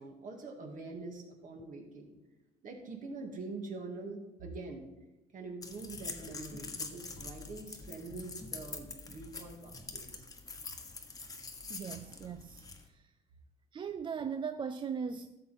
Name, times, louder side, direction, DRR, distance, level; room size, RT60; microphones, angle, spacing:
voice 1, 0.0-2.1 2.6-4.9 5.3-10.3, right 3 dB, 50° right, 2.3 m, -44 dB
sound 1, 5.6-12.9, left 3 dB, 20° left, 1.2 m, -45 dB
voice 2, 11.7-13.1 13.7-15.4, right 6 dB, 30° right, 0.4 m, -39 dB
12.5 x 7.4 x 4.3 m
cardioid pair, 110°, 17 cm